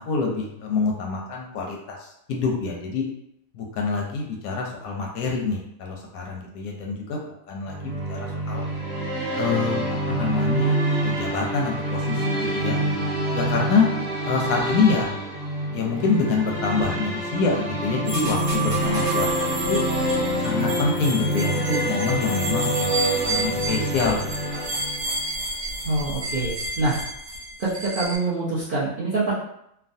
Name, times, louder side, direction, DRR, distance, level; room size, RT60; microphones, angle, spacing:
voice 1, 0.0-3.0 3.5-7.2 7.5-8.7 9.4-12.8 13.3-13.9 14.2-15.2 15.7-19.8 20.4-24.6, left 4 dB, 70° left, 0 dB, 0.9 m, -26 dB
sound 1, 7.6-25.4, right 1 dB, 40° right, 0.8 m, -26 dB
sound 2, 18.0-28.2, right 2 dB, 60° right, 1.3 m, -30 dB
voice 2, 25.8-27.0 27.6-29.3, right 2 dB, 80° right, -10 dB, 0.4 m, -25 dB
3.2 x 2.2 x 2.6 m, 0.77 s
omnidirectional pair, 1.9 m